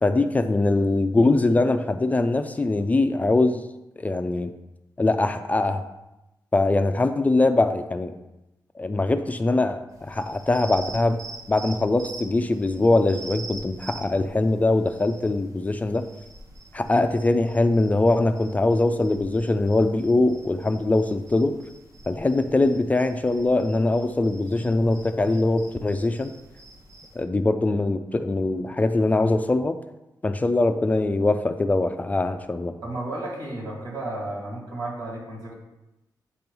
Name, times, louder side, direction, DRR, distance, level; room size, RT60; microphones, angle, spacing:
voice 1, 0.0-3.6 4.0-4.5 5.0-5.8 6.5-8.1 8.8-11.2 11.5-16.1 16.7-21.6 22.1-26.3 27.2-29.8 30.2-32.7, left 2 dB, 20° left, 8 dB, 0.3 m, -22 dB
sound 1, 9.9-27.2, right 2 dB, 50° right, 0.9 m, -45 dB
voice 2, 32.8-35.5, right 2 dB, 80° right, -5 dB, 2.6 m, -33 dB
8.4 x 2.9 x 5.3 m, 0.95 s
wide cardioid pair, 145°, 7 cm